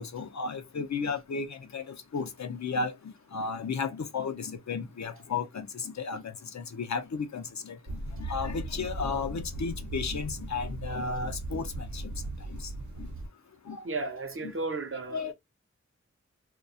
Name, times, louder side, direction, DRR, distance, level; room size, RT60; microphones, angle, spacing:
voice 1, 0.0-7.8 8.2-12.1 13.7-14.1 14.4-14.5 15.1-15.3, left 5 dB, 70° left, 0.5 m, -34 dB
sound 1, 7.9-13.3, right 2 dB, 80° right, 0.8 m, -38 dB
voice 2, 13.8-15.3, right 3 dB, 50° right, 0.5 m, -34 dB
2.3 x 2.2 x 2.5 m
wide cardioid pair, 45°, 29 cm